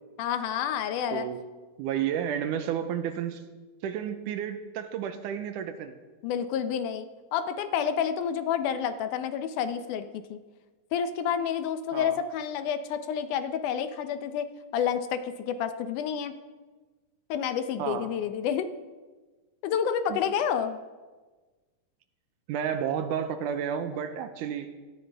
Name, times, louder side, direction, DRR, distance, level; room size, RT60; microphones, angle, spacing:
voice 1, 0.2-1.3 6.2-10.4 10.9-14.5 14.7-16.3 17.3-18.7 19.6-20.8, left 8 dB, 80° left, 10 dB, 2.2 m, -29 dB
voice 2, 1.1-1.4 1.8-3.4 3.8-6.0 11.9-12.2 17.8-18.1 20.1-20.2 22.5-24.7, right 8 dB, 80° right, 9 dB, 2.2 m, -31 dB
17.0 x 14.0 x 3.4 m, 1.3 s
omnidirectional pair, 3.8 m